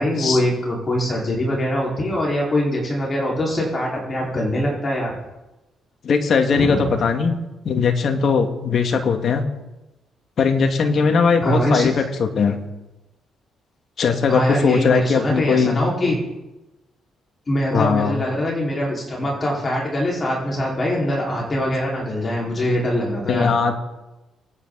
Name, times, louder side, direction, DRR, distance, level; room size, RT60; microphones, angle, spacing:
voice 1, 0.0-5.2 6.5-6.9 11.4-11.9 14.3-16.2 17.5-23.5, equal, 30° left, -4 dB, 4.8 m, -23 dB
voice 2, 6.0-7.4 7.6-9.4 10.4-12.6 14.0-15.8 17.7-18.2 23.3-23.7, left 5 dB, 55° left, 5 dB, 2.0 m, -19 dB
24.0 x 10.0 x 4.1 m, 1.0 s
cardioid pair, 90°, 0 cm